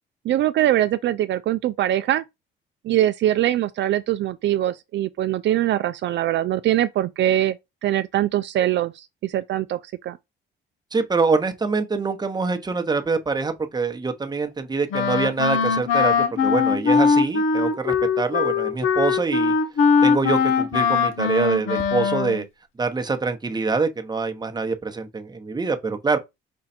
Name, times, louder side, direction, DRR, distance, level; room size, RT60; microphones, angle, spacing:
voice 1, 0.2-2.2 2.8-7.6 7.8-10.2, right 13 dB, 65° right, 0.4 m, -22 dB
voice 2, 10.9-16.2 16.4-19.5 20.0-22.4 22.8-26.2, right 4 dB, 20° right, 0.9 m, -25 dB
Wind instrument woodwind instrument, 14.9-22.4, left 5 dB, 85° left, 0.9 m, -21 dB
5.3 x 2.3 x 4.2 m
cardioid pair, 90°, 20 cm